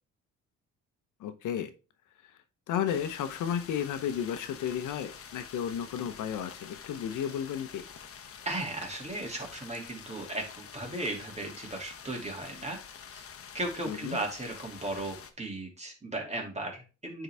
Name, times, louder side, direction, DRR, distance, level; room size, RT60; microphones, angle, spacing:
voice 1, 1.2-1.7 2.7-7.8 13.9-14.2, left 9 dB, 85° left, 10 dB, 0.9 m, -33 dB
sound 1, 2.9-15.3, left 7 dB, 50° left, 1.1 m, -47 dB
voice 2, 8.4-12.8 13.1-13.2 13.5-17.2, right 2 dB, 20° right, 1 dB, 2.5 m, -36 dB
9.1 x 4.0 x 3.5 m, 0.33 s
cardioid pair, 90°, 30 cm